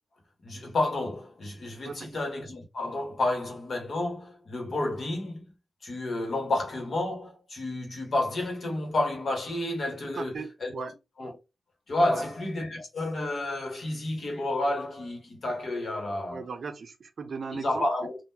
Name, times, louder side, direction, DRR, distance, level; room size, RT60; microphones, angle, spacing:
voice 1, 0.4-5.4 5.8-10.3 10.6-10.7 11.2-11.3 11.9-16.4 17.5-18.2, left 2 dB, 55° left, 1.3 m, -30 dB
voice 2, 10.1-10.9 12.1-12.3 16.3-17.9, right 5 dB, 55° right, 0.5 m, -37 dB
3.7 x 2.5 x 2.8 m
wide cardioid pair, 180°, 0 cm